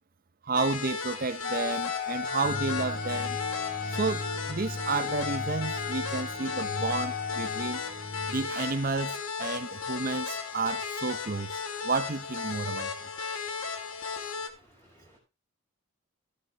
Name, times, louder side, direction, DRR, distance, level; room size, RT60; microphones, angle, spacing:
voice 1, 0.4-3.4 3.9-7.8 8.3-12.9, right 3 dB, 40° right, 0.7 m, -31 dB
sound 1, 0.5-14.5, left 5 dB, 80° left, 1.7 m, -35 dB
Wind instrument woodwind instrument, 1.4-7.9, left 7 dB, 40° left, 0.8 m, -36 dB
sound 2, 2.4-8.5, left 1 dB, 25° right, 2.0 m, -39 dB
voice 2, 14.5-15.2, equal, 10° left, 5.0 m, -60 dB
13.5 x 9.9 x 3.0 m
head